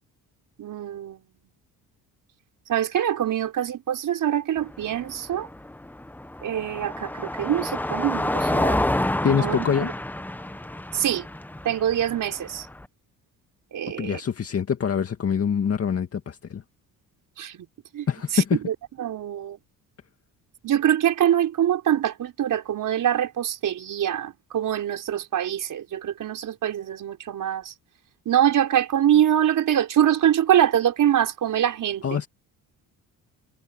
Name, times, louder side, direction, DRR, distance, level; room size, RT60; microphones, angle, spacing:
voice 1, 0.6-1.2 2.7-5.5 6.4-8.8 9.3-9.9 10.9-11.3 11.6-12.7 13.7-14.2 17.4-17.7 17.9-18.1 18.3-19.6 20.6-27.7 28.3-32.2, right 10 dB, 60° right, 5.4 m, -24 dB
Car passing by, 4.6-12.9, left 1 dB, 5° left, 1.0 m, -29 dB
voice 2, 9.2-9.9 14.0-16.6 18.1-18.6 32.0-32.3, left 7 dB, 40° left, 2.1 m, -24 dB
cardioid pair, 105°, 36 cm